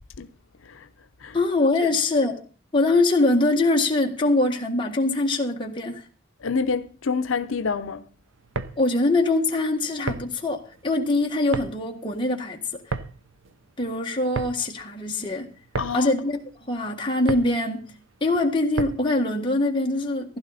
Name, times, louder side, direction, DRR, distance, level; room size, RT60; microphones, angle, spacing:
voice 1, 1.3-2.4 2.7-6.0 8.8-12.8 13.8-15.5 15.9-16.4 16.7-17.8 18.2-20.4, left 2 dB, 25° left, 1.7 m, -23 dB
voice 2, 6.4-8.1 15.8-16.1, left 5 dB, 80° left, 0.7 m, -27 dB
sound 1, 8.3-19.2, right 3 dB, 75° right, 0.8 m, -35 dB
15.5 x 11.5 x 4.1 m
head